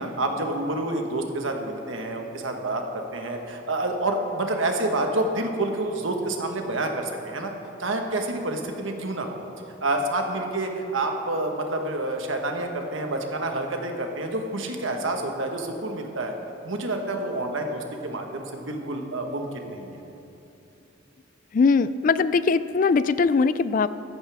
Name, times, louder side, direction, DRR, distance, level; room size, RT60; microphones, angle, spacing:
voice 1, 0.0-7.5 7.8-9.4 9.8-16.3 16.6-20.0, right 2 dB, 80° right, 3 dB, 1.4 m, -28 dB
voice 2, 21.5-23.9, left 4 dB, 40° left, 15 dB, 0.3 m, -21 dB
14.5 x 14.0 x 3.5 m, 2.9 s
head